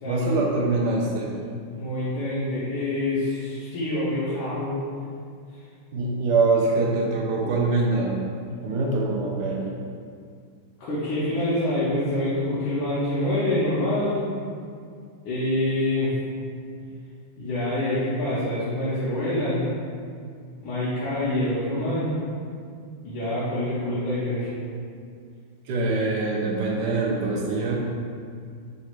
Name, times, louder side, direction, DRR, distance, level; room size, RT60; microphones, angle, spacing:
voice 1, 0.0-1.3 5.9-8.2 8.6-9.7 25.7-27.8, right 3 dB, 75° right, -2 dB, 1.0 m, -24 dB
voice 2, 1.7-4.7 10.8-14.2 15.2-16.1 17.4-19.7 20.6-22.1 23.0-24.5, left 1 dB, 75° left, -11 dB, 1.6 m, -26 dB
4.0 x 2.4 x 4.4 m, 2.2 s
omnidirectional pair, 2.1 m